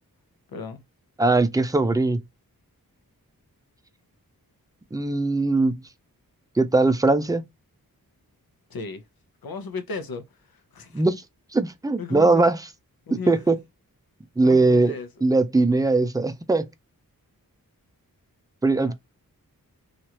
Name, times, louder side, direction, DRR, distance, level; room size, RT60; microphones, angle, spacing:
voice 1, 0.5-0.8 8.7-9.0 9.4-11.1 12.0-12.5 13.1-13.4 14.4-15.1 18.7-18.9, left 4 dB, 75° left, 0.8 m, -35 dB
voice 2, 1.2-2.2 4.9-5.8 6.6-7.4 10.9-11.2 11.5-12.6 13.3-13.6 14.4-14.9 15.2-16.7 18.6-18.9, right 3 dB, 10° right, 0.4 m, -20 dB
3.1 x 2.5 x 2.9 m
wide cardioid pair, 100°, 36 cm